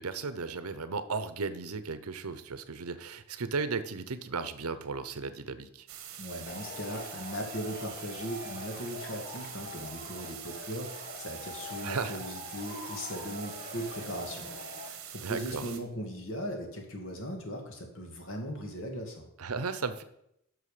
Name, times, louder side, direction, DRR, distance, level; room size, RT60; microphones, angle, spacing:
voice 1, 0.0-5.9 11.8-12.2 15.2-15.6 19.4-20.0, right 4 dB, 85° right, 13 dB, 0.8 m, -35 dB
sound 1, 5.9-15.8, right 9 dB, 65° right, 1.3 m, -45 dB
voice 2, 6.2-14.5 14.9-19.3, equal, 60° left, 3 dB, 2.1 m, -38 dB
Male speech man speaking / Shout / Clapping, 6.5-14.9, left 2 dB, 40° left, 1.5 m, -44 dB
11.0 x 6.3 x 5.0 m, 0.78 s
head